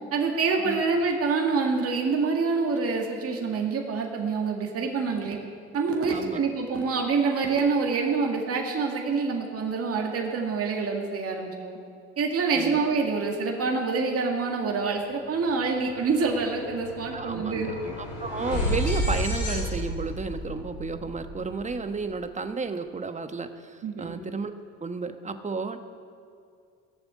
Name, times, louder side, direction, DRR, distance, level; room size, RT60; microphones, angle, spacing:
voice 1, 0.1-5.4 5.7-11.8 12.2-17.7 23.8-24.1, right 4 dB, 45° right, 1 dB, 2.1 m, -26 dB
voice 2, 6.1-6.4 12.6-12.8 17.1-24.5 24.8-25.8, right 4 dB, 20° right, 8 dB, 1.2 m, -32 dB
sound 1, 15.3-15.5 15.8-22.0, equal, 85° left, 5.0 m, -32 dB
17.0 x 7.1 x 9.4 m, 2.3 s
supercardioid pair, 75°, 32 cm